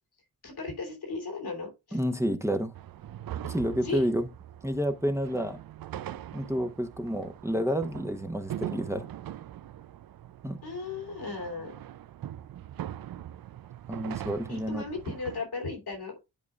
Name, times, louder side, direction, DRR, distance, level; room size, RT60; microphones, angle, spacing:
voice 1, 0.4-2.0 3.8-4.1 10.6-11.8 14.5-16.1, left 4 dB, 85° left, 2.8 m, -36 dB
voice 2, 1.9-2.8 3.4-4.3 4.6-5.6 6.3-9.1 10.4-10.6 13.9-14.8, equal, 5° right, 0.9 m, -29 dB
sound 1, 2.7-15.4, right 11 dB, 65° right, 0.5 m, -42 dB
11.0 x 4.8 x 2.3 m
cardioid pair, 75°, 38 cm